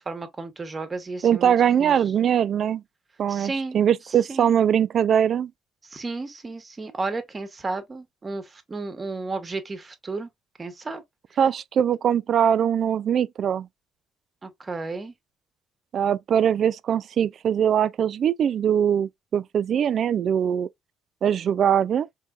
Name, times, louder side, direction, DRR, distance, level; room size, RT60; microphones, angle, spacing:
voice 1, 0.0-1.5 1.8-2.0 3.3-3.8 4.3-4.5 5.8-10.3 10.6-11.0 11.3-11.4 14.4-15.1, right 3 dB, 30° right, 1.1 m, -33 dB
voice 2, 1.2-2.8 3.2-5.5 11.4-13.7 15.9-20.7 21.2-22.1, right 9 dB, 55° right, 0.3 m, -22 dB
4.5 x 3.3 x 2.4 m
supercardioid pair, 80°, 0 cm